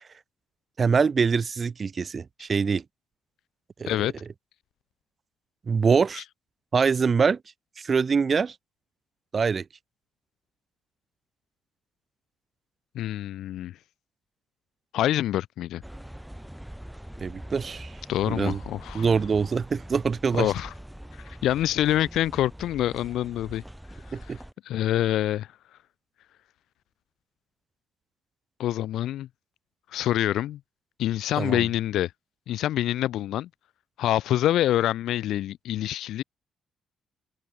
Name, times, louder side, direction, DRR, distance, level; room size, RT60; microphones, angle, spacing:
voice 1, 0.8-2.8 3.8-3.9 5.7-6.2 6.7-7.4 7.8-8.5 9.3-9.6 17.2-17.9 18.3-18.6 18.9-20.5 24.1-24.4 31.4-31.6, right 5 dB, 40° right, 1.2 m, -24 dB
voice 2, 12.9-13.8 14.9-15.8 18.1-19.1 20.4-20.7 21.2-23.6 24.1-24.4 24.6-25.5 28.6-29.3 29.9-30.6 31.0-32.1 32.5-33.5 34.0-36.2, left 13 dB, 80° left, 1.5 m, -26 dB
sound 1, 15.8-24.5, equal, 5° right, 3.3 m, -43 dB
open air
cardioid pair, 90°, 0 cm